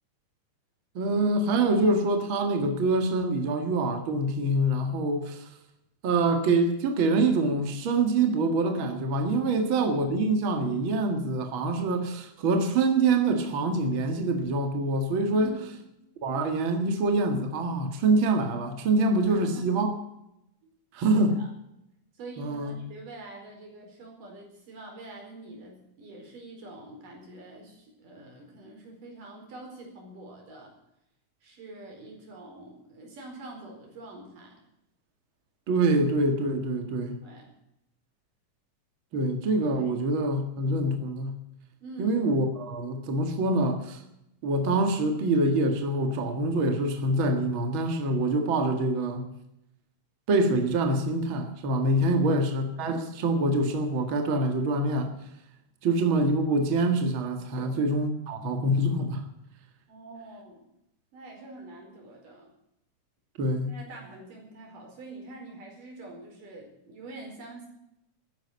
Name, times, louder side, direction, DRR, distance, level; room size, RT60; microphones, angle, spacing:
voice 1, 1.0-5.5 6.0-15.5 16.2-19.9 20.9-21.4 22.4-22.7 35.7-37.2 39.1-41.4 42.0-44.0 44.4-49.2 50.3-55.1 55.8-59.2 63.4-63.7, right 2 dB, 45° right, 5 dB, 2.3 m, -25 dB
voice 2, 9.5-9.9 15.3-15.7 19.3-19.6 21.0-21.5 22.1-30.7 31.4-34.6 37.2-37.5 39.8-39.9 41.8-42.2 51.9-52.3 57.6-57.7 59.9-60.6 61.1-62.5 63.7-67.7, right 2 dB, 85° right, 1 dB, 6.2 m, -45 dB
14.0 x 10.5 x 8.5 m, 0.83 s
omnidirectional pair, 3.7 m